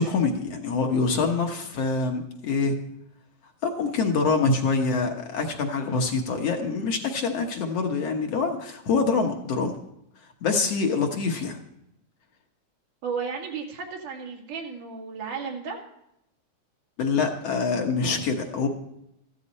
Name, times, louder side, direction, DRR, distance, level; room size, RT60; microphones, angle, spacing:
voice 1, 0.0-2.8 3.6-9.8 10.4-11.6 17.0-18.7, left 4 dB, 60° left, 3 dB, 2.2 m, -25 dB
voice 2, 13.0-15.8, right 5 dB, 85° right, 1 dB, 3.6 m, -33 dB
14.5 x 13.5 x 4.2 m, 0.79 s
omnidirectional pair, 3.5 m